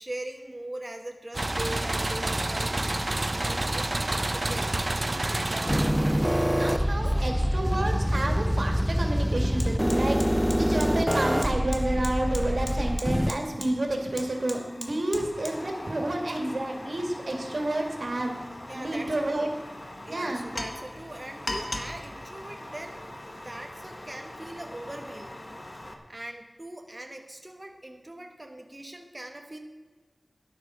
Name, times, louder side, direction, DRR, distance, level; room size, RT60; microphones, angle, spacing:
voice 1, 0.0-3.9 4.2-6.0 7.0-7.3 9.9-10.1 18.7-19.5 20.0-23.0 23.3-25.3 26.1-29.6, right 1 dB, 30° right, 3 dB, 1.2 m, -41 dB
sound 1, 1.3-7.2, right 2 dB, 50° right, 0.6 m, -29 dB
sound 2, 5.7-13.3, equal, ahead, 0.5 m, -25 dB
voice 2, 6.6-10.2 10.5-18.3 18.7-19.5 20.1-20.4, right 1 dB, 85° right, 2 dB, 2.2 m, -30 dB
Fire, 9.6-25.9, left 1 dB, 50° left, 1.7 m, -41 dB
12.5 x 11.0 x 5.8 m, 1.3 s
wide cardioid pair, 55°, 0 cm